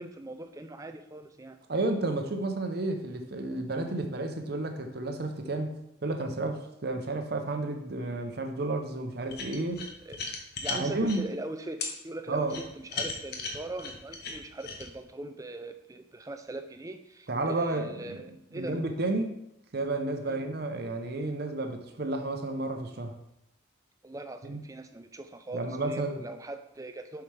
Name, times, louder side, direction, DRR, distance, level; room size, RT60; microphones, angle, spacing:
voice 1, 0.0-1.6 10.0-10.2 10.6-18.8 20.2-20.4 24.0-27.2, right 2 dB, 15° right, 7 dB, 0.4 m, -41 dB
voice 2, 1.7-5.8 6.0-9.8 10.7-11.3 12.3-12.6 17.3-18.2 18.5-19.4 19.7-23.1 24.4-24.6 25.5-26.2, right 2 dB, 55° right, 6 dB, 0.8 m, -31 dB
sound 1, 9.3-11.2 11.8-11.9 12.5-14.9, left 4 dB, 55° left, 1.0 m, -36 dB
6.8 x 5.9 x 3.3 m, 0.82 s
head